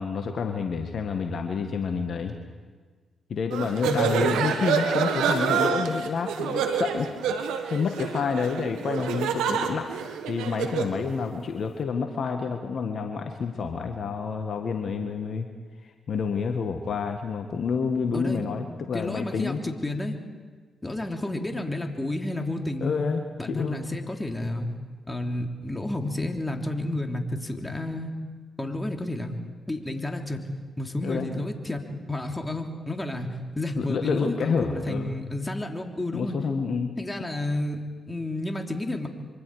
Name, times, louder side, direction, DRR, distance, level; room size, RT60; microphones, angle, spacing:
voice 1, 0.0-2.3 3.3-7.1 7.7-9.9 10.3-15.5 16.1-19.6 22.8-23.2 23.5-23.8 31.0-31.3 33.8-35.1 36.1-36.9, left 5 dB, 65° left, 5 dB, 1.5 m, -28 dB
sound 1, 3.5-11.0, right 7 dB, 80° right, 1.4 m, -27 dB
voice 2, 3.8-4.3 18.1-18.4 18.9-20.2 20.8-23.0 23.4-24.7 25.1-28.1 28.6-29.3 29.7-30.4 30.8-31.8 32.1-36.4 37.0-39.1, left 1 dB, 20° left, 3 dB, 3.3 m, -31 dB
26.0 x 24.5 x 4.9 m, 1.5 s
hypercardioid pair, 45°, 0 cm